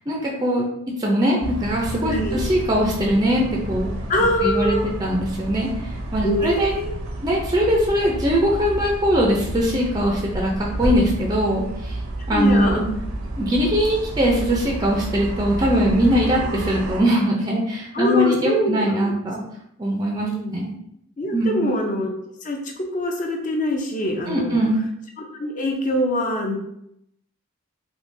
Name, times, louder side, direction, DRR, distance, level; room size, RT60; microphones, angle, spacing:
voice 1, 0.1-0.7 1.0-3.9 4.4-6.7 7.2-12.0 12.3-12.8 13.4-19.4 19.8-20.7 21.3-21.7 24.3-24.8, equal, 20° right, -1 dB, 0.4 m, -21 dB
sound 1, 1.4-17.0, right 1 dB, 75° right, 0.5 m, -30 dB
voice 2, 2.1-2.4 4.1-5.0 6.2-6.9 12.3-12.9 17.9-19.1 20.3-20.5 21.2-22.1 22.4-22.6 22.9-24.6 25.2-26.6, left 1 dB, 35° left, 2 dB, 0.5 m, -24 dB
3.6 x 2.7 x 2.6 m, 0.76 s
head